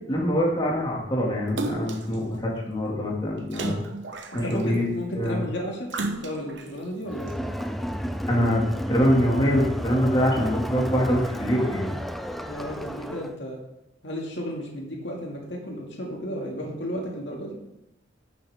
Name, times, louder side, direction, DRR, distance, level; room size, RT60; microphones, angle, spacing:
voice 1, 0.1-3.8 4.3-4.8 5.2-5.4 8.3-12.0, equal, 25° left, -3 dB, 2.0 m, -24 dB
Splash splatter, 1.6-2.2 3.5-4.7 5.9-6.7 7.3-7.4, right 2 dB, 75° right, 0.9 m, -32 dB
voice 2, 4.3-5.9 6.2-7.4 12.5-13.6 14.0-17.5, equal, 75° left, -1 dB, 2.0 m, -33 dB
Crowd, 7.1-13.4, equal, ahead, 0.3 m, -32 dB
11.5 x 7.1 x 3.5 m, 0.90 s
head